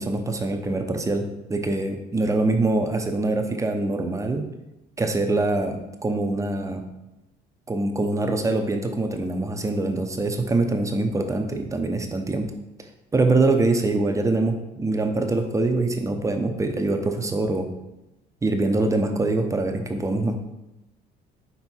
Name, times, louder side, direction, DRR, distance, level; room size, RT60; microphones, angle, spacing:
voice 1, 0.0-4.5 5.0-6.8 7.7-12.5 13.1-17.7 18.4-20.4, right 2 dB, 20° right, 5 dB, 0.7 m, -24 dB
5.5 x 3.8 x 4.5 m, 0.95 s
cardioid pair, 110°, 17 cm